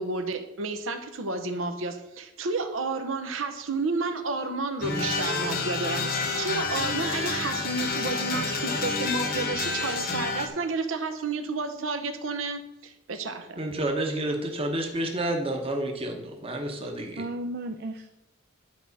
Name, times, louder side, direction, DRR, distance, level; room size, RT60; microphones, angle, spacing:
voice 1, 0.0-13.6, right 3 dB, 85° right, 7 dB, 0.8 m, -31 dB
sound 1, 4.8-10.5, left 3 dB, 45° left, 0.9 m, -29 dB
voice 2, 7.0-8.0 17.2-18.1, right 2 dB, 50° right, 6 dB, 0.4 m, -36 dB
voice 3, 13.6-17.2, right 1 dB, 30° right, 3 dB, 0.9 m, -30 dB
10.5 x 4.7 x 4.1 m, 0.95 s
head